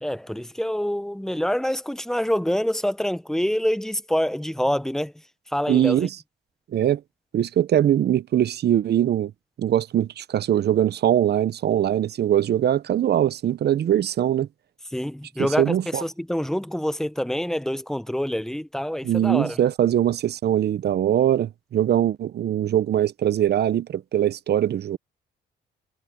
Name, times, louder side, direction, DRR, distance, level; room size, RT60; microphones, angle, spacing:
voice 1, 0.0-6.1 14.9-19.6, equal, ahead, 0.9 m, -26 dB
voice 2, 5.7-6.1 6.7-7.0 7.3-9.3 9.6-14.5 15.6-16.0 19.0-25.0, right 11 dB, 55° right, 0.7 m, -22 dB
cardioid pair, 90°, 20 cm